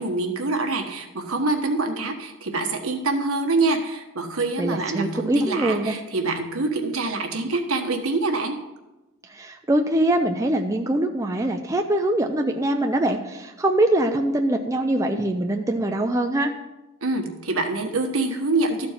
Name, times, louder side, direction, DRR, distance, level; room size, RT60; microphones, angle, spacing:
voice 1, 0.0-8.6 17.0-18.9, right 3 dB, 70° right, 4 dB, 1.3 m, -25 dB
voice 2, 4.6-6.0 9.2-16.6, right 1 dB, 15° right, 3 dB, 0.4 m, -23 dB
13.0 x 4.4 x 5.7 m, 1.0 s
head